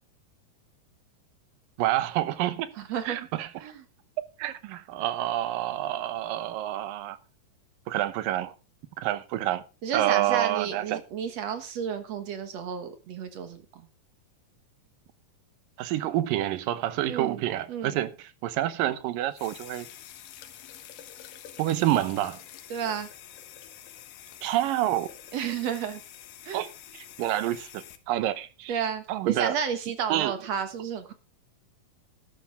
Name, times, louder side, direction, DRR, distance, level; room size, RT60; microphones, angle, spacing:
voice 1, 1.8-2.7 3.1-3.5 4.4-7.2 7.9-8.5 9.0-9.6 9.9-11.0 15.8-18.1 18.4-19.9 21.6-22.4 24.4-25.1 26.5-26.7 27.2-28.8 29.1-29.5 30.1-30.3, right 13 dB, 85° right, 2.6 m, -28 dB
voice 2, 2.8-3.3 3.6-3.8 9.8-13.9 17.1-17.4 17.7-18.0 22.7-23.1 25.3-26.0 26.4-26.6 28.7-31.1, right 7 dB, 60° right, 2.3 m, -32 dB
sound 1, 19.3-28.0, left 11 dB, 80° left, 2.8 m, -47 dB
12.0 x 11.5 x 3.6 m
omnidirectional pair, 3.9 m